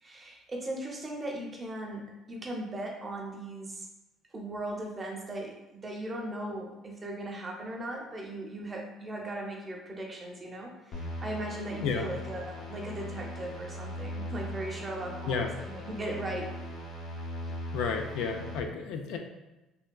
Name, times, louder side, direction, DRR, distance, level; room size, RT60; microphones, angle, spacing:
voice 1, 0.0-3.9 4.3-16.5, right 1 dB, 25° right, 0 dB, 0.5 m, -38 dB
sound 1, 10.9-18.6, left 1 dB, 60° left, 0.7 m, -39 dB
voice 2, 17.7-19.2, left 5 dB, 85° left, 4 dB, 0.3 m, -31 dB
3.4 x 2.2 x 2.2 m, 1.0 s
cardioid pair, 130°, 0 cm